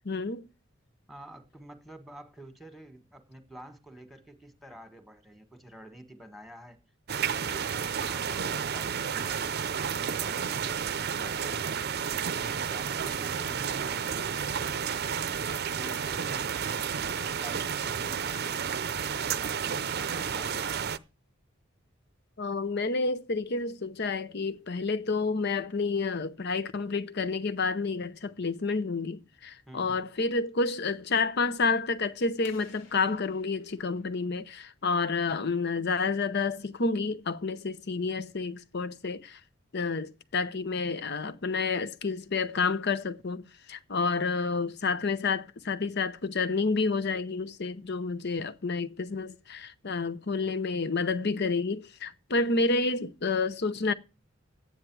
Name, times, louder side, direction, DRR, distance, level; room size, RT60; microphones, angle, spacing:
voice 1, 0.0-0.5 22.4-39.4 39.7-53.9, left 4 dB, 55° left, 0.8 m, -29 dB
voice 2, 1.1-6.8 7.1-11.6 12.3-15.3 15.8-21.1 29.7-30.1, right 1 dB, ahead, 1.6 m, -49 dB
sound 1, 7.1-21.0, right 7 dB, 55° right, 0.6 m, -31 dB
sound 2, 32.4-35.1, left 3 dB, 90° left, 2.8 m, -56 dB
11.5 x 9.5 x 4.7 m
head